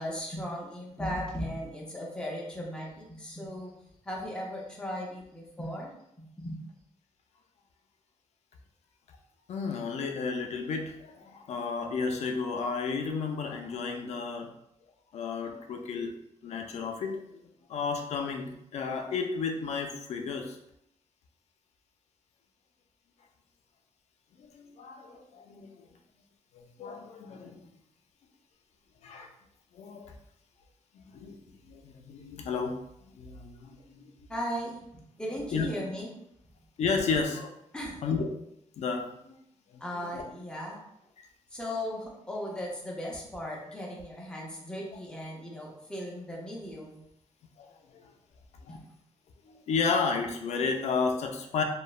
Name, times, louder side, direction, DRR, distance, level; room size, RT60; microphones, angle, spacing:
voice 1, 0.0-3.7 4.0-5.9 6.2-6.6 34.3-36.1 37.7-38.0 39.8-40.8 41.5-47.0 48.7-48.8, equal, 5° left, -3 dB, 0.5 m, -37 dB
voice 2, 9.5-14.5 15.1-16.1 16.4-20.6 24.4-25.9 26.5-27.6 29.0-29.3 29.7-30.1 30.9-32.8 33.1-34.0 35.5-35.7 36.8-37.6 38.0-38.3 38.8-39.4 39.7-40.2 41.2-41.3 47.6-47.7 47.9-48.1 48.6-48.8 49.5-51.6, left 5 dB, 65° left, 4 dB, 0.4 m, -33 dB
2.9 x 2.1 x 2.3 m, 0.78 s
wide cardioid pair, 175°, 12 cm